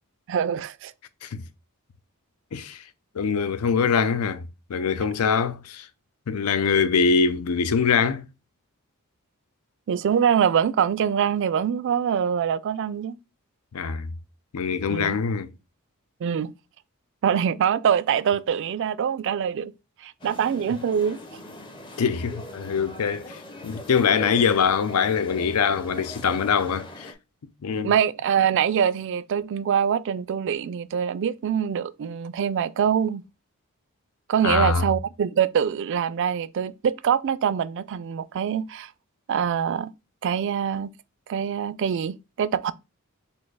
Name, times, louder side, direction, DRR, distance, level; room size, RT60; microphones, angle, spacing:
voice 1, 0.3-0.9 9.9-13.2 14.9-15.2 16.2-16.5 17.2-19.7 20.0-21.2 27.8-33.2 34.3-38.9 39.3-39.9 40.2-40.9 41.3-42.7, right 8 dB, 55° right, 0.3 m, -24 dB
voice 2, 2.5-2.8 3.1-5.9 6.3-8.3 13.7-14.1 14.5-15.5 22.0-27.1 27.6-27.9 34.4-34.8, left 6 dB, 85° left, 0.5 m, -23 dB
sound 1, 20.2-27.1, left 1 dB, 20° left, 0.6 m, -41 dB
4.2 x 2.5 x 4.6 m
head